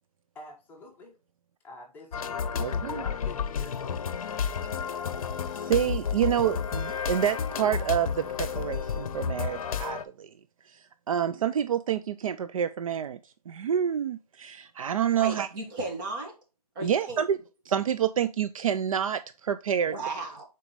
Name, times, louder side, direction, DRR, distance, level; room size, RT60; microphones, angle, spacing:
voice 1, 0.3-1.2 1.6-4.1, left 2 dB, 10° left, 1.1 m, -47 dB
sound 1, 2.1-10.0, left 6 dB, 60° left, 0.7 m, -31 dB
voice 2, 2.6-3.0 5.6-10.3 10.7-13.2 13.5-15.5 16.8-17.4 17.7-19.9, right 9 dB, 60° right, 0.4 m, -28 dB
voice 3, 15.2-16.3 16.8-17.2 19.9-20.4, right 2 dB, 30° right, 2.0 m, -35 dB
7.1 x 4.4 x 3.3 m
hypercardioid pair, 155°, 20 cm